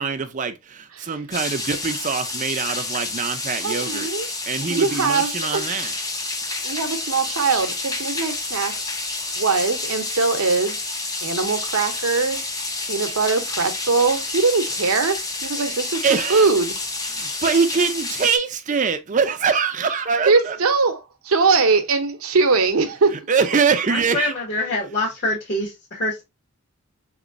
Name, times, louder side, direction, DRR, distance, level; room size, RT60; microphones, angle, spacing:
voice 1, 0.0-4.1 4.5-5.9 15.6-15.8 16.0-16.5 17.1-20.6 23.3-24.3, right 5 dB, 35° right, 0.4 m, -23 dB
sound 1, 1.3-18.4, left 2 dB, 15° left, 0.5 m, -29 dB
voice 2, 3.6-4.3 4.7-5.7 6.6-8.8 9.4-10.8 11.2-12.5 12.9-16.0 16.3-16.7 20.3-23.2, right 4 dB, 70° right, 0.7 m, -21 dB
voice 3, 23.9-26.2, left 1 dB, 45° left, 1.4 m, -25 dB
3.6 x 3.0 x 2.4 m
head